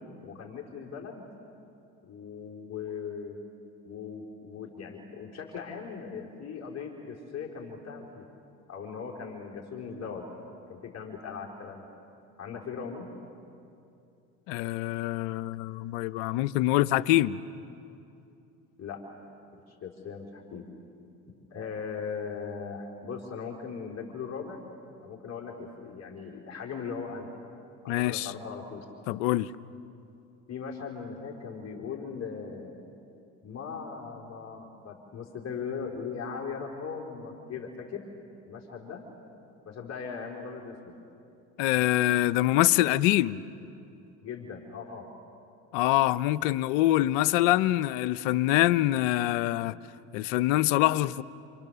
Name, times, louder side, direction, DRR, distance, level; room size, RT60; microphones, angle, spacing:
voice 1, 0.2-1.2 2.0-3.4 3.8-8.2 8.7-10.2 10.7-11.9 12.4-13.1 18.8-19.0 19.7-20.7 21.5-24.6 25.0-27.3 27.8-28.8 30.5-32.8 33.4-38.0 38.5-39.0 39.7-41.0 44.2-45.1, left 6 dB, 45° left, 4.0 m, -39 dB
voice 2, 14.5-17.4 27.9-28.3 29.1-29.5 41.6-43.4 45.7-49.8 50.1-51.2, left 15 dB, 85° left, 0.8 m, -25 dB
28.0 x 27.5 x 6.9 m
supercardioid pair, 80°, 37 cm